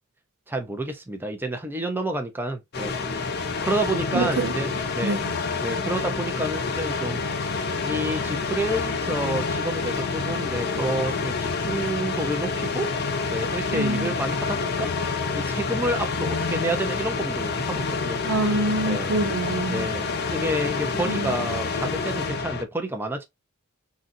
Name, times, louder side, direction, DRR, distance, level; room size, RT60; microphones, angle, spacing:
voice 1, 0.5-2.9 3.6-5.2 5.6-7.2 7.8-12.9 13.3-14.9 15.3-18.2 18.8-19.1 19.7-23.3, right 1 dB, 10° right, 0.6 m, -29 dB
sound 1, 2.7-22.6, left 4 dB, 50° left, 0.5 m, -28 dB
voice 2, 4.1-4.5 5.0-5.3 13.7-14.1 18.2-19.9 21.0-21.5, right 2 dB, 70° right, 0.5 m, -26 dB
3.9 x 2.4 x 2.6 m
head